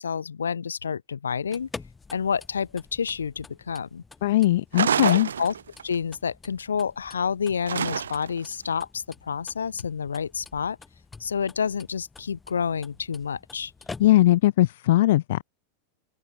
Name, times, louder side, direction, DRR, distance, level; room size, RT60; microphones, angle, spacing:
voice 1, 0.0-1.7 2.1-4.0 5.1-5.5 5.8-10.8 11.2-13.7, left 6 dB, 70° left, 2.2 m, -29 dB
sound 1, 1.3-14.5, left 4 dB, 15° left, 4.8 m, -47 dB
voice 2, 4.2-5.3 14.0-15.4, left 15 dB, 55° left, 0.5 m, -19 dB
sound 2, 4.7-6.0 7.7-8.4, right 7 dB, 70° right, 0.3 m, -27 dB
figure-of-eight pair, 90°, 0 cm